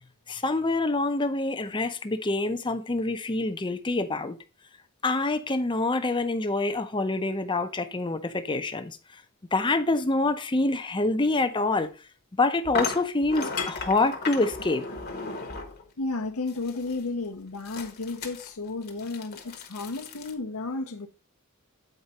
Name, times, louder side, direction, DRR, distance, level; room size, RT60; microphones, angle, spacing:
voice 1, 0.3-4.4 5.0-9.0 9.5-11.9 12.4-14.8, left 2 dB, 20° left, 0.6 m, -26 dB
sound 1, 11.8-11.9 12.8-15.8 16.5-17.0 17.7-20.3, left 4 dB, 45° left, 1.1 m, -35 dB
voice 2, 16.0-21.1, left 3 dB, 70° left, 0.8 m, -33 dB
8.0 x 4.6 x 4.1 m
head